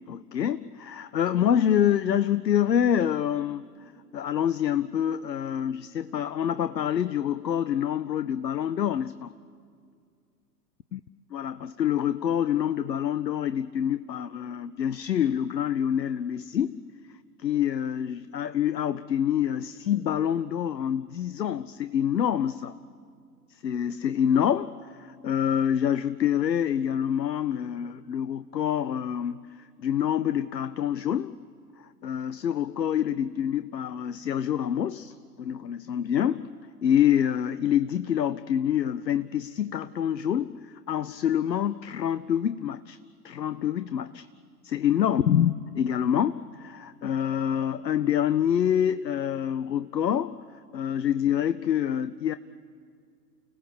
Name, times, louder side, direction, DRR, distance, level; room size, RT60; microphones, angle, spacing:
voice 1, 0.1-3.7 4.1-9.3 10.9-11.0 11.3-16.8 17.4-22.7 23.6-29.4 29.8-31.3 31.8-36.5 36.8-43.0 43.2-44.3 44.6-50.3 50.7-52.4, left 9 dB, 80° left, 15 dB, 0.7 m, -26 dB
30.0 x 17.5 x 7.2 m, 2.2 s
figure-of-eight pair, 115°, 50 cm